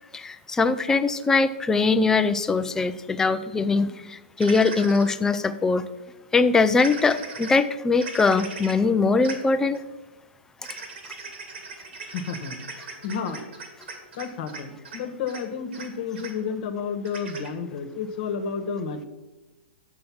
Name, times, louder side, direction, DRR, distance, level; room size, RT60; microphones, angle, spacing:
voice 1, 0.1-5.9 6.3-9.8, left 4 dB, 10° left, 11 dB, 0.4 m, -22 dB
sound 1, 4.4-5.1 6.8-7.6 8.0-8.7 9.2-9.3 9.7-9.8 10.6-14.6 14.8-15.0 15.3-15.4 15.7-15.9 16.1-16.3 17.0-17.5, right 4 dB, 75° right, 2.2 m, -38 dB
voice 2, 12.1-12.6 13.0-13.4 14.2-19.0, left 6 dB, 50° left, 9 dB, 1.1 m, -31 dB
6.9 x 6.4 x 6.1 m, 1.1 s
hypercardioid pair, 135°, 6 cm